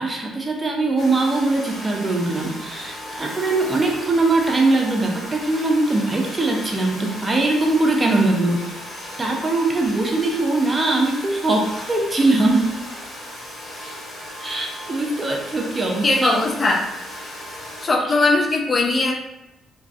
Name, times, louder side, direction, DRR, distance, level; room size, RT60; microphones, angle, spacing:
voice 1, 0.0-8.6 9.2-12.7 14.4-16.3 18.0-18.1, right 2 dB, 25° right, 0 dB, 0.5 m, -21 dB
Domestic sounds home sounds, 1.0-17.9, left 1 dB, 60° left, 0.7 m, -36 dB
voice 2, 16.0-16.9 17.8-19.1, left 2 dB, 35° left, 0 dB, 0.3 m, -19 dB
2.3 x 2.2 x 2.3 m, 0.93 s
figure-of-eight pair, 40°, 0 cm